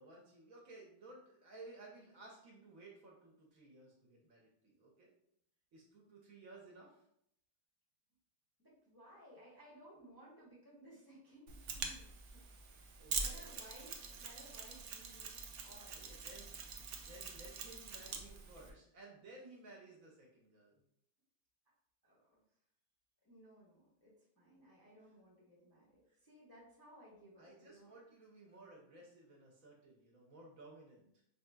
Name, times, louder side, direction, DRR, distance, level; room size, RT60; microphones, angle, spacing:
voice 1, 0.0-5.1 5.7-7.1 13.0-13.6 16.1-16.6 17.0-20.8 25.0-25.1 26.1-26.2 27.4-31.0, right 2 dB, 60° right, -2 dB, 1.0 m, -57 dB
voice 2, 8.6-15.4 15.6-16.1 22.0-22.4 23.2-27.9, equal, 20° left, -6 dB, 0.6 m, -60 dB
Mechanisms, 11.5-18.7, right 5 dB, 85° right, 0.6 m, -45 dB
4.9 x 2.7 x 2.2 m, 0.74 s
omnidirectional pair, 1.8 m